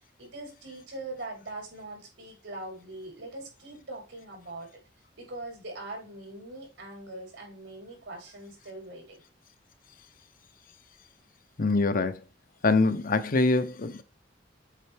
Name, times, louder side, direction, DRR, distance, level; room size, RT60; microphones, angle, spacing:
voice 1, 0.2-4.8 5.2-9.2, right 2 dB, 80° right, 3.9 m, -42 dB
voice 2, 11.6-12.2 12.6-14.0, left 3 dB, 50° left, 0.7 m, -24 dB
7.4 x 4.5 x 3.4 m
head